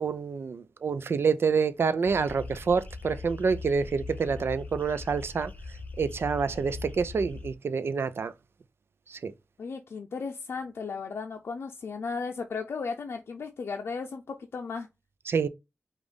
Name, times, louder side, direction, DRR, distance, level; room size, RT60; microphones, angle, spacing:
voice 1, 0.0-5.5 6.0-8.3 9.1-9.3 15.3-15.5, right 5 dB, 75° right, 0.5 m, -27 dB
sound 1, 2.1-7.5, left 3 dB, 40° left, 0.8 m, -41 dB
voice 2, 9.6-14.9, left 5 dB, 85° left, 0.5 m, -35 dB
5.1 x 2.4 x 3.6 m
wide cardioid pair, 90°, 4 cm